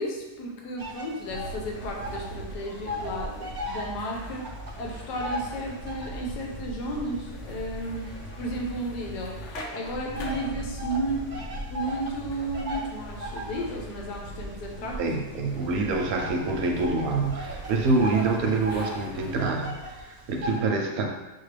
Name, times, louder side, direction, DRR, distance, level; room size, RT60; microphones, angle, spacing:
voice 1, 0.0-4.5 4.8-9.4 9.7-11.4 11.7-15.2, right 1 dB, 75° left, 0 dB, 1.4 m, -33 dB
sound 1, 0.8-2.4 2.6-6.3 6.9-8.9 9.6-20.6, left 1 dB, 50° right, 0.5 m, -38 dB
sound 2, 1.3-19.5, right 1 dB, 60° left, 0.8 m, -40 dB
voice 2, 15.0-21.1, right 3 dB, 70° right, 2 dB, 1.0 m, -26 dB
6.5 x 2.4 x 3.2 m, 1.1 s
omnidirectional pair, 1.8 m